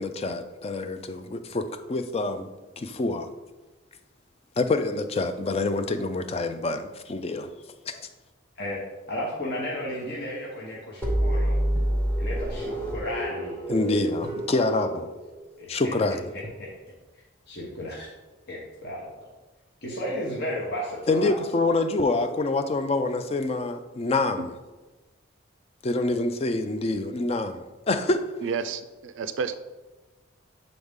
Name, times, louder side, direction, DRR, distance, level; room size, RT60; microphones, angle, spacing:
voice 1, 0.0-2.5 2.8-3.3 4.6-7.5 7.9-8.1 13.7-15.1 15.7-16.2 21.1-24.5 25.8-28.2, left 2 dB, 30° left, 0.3 m, -26 dB
voice 2, 9.1-11.5 12.2-13.6 15.6-15.9 17.5-18.1 18.5-19.1 19.8-21.3, left 1 dB, 50° left, 0.9 m, -33 dB
sound 1, 11.0-15.8, right 1 dB, 10° left, 0.9 m, -28 dB
sound 2, 11.7-12.1 14.2-14.8 16.4-16.8 18.8-19.4, equal, 20° right, 0.8 m, -46 dB
voice 3, 28.4-29.5, right 5 dB, 65° right, 0.3 m, -30 dB
7.9 x 3.9 x 3.6 m
head